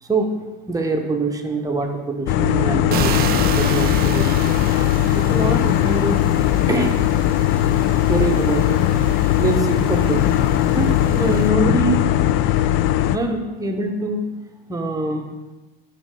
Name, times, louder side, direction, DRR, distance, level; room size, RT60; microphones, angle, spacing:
voice 1, 0.0-4.5 5.1-6.3 6.7-7.0 8.1-8.8 9.4-10.3 10.7-12.0 13.1-14.4 14.7-15.3, right 2 dB, 10° right, 3 dB, 1.2 m, -24 dB
sound 1, 2.3-13.2, left 12 dB, 45° left, 0.4 m, -19 dB
sound 2, 2.9-11.5, right 11 dB, 35° right, 0.4 m, -31 dB
11.5 x 4.2 x 3.8 m, 1.1 s
hypercardioid pair, 80°, 29 cm